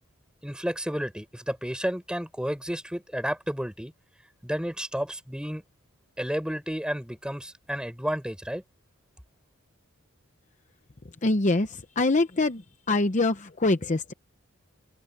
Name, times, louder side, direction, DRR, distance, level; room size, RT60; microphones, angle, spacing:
voice 1, 0.4-3.9 4.4-5.6 6.2-8.6, equal, 5° right, 7.0 m, -31 dB
voice 2, 11.2-12.6 12.9-14.1, left 2 dB, 35° left, 0.8 m, -24 dB
open air
head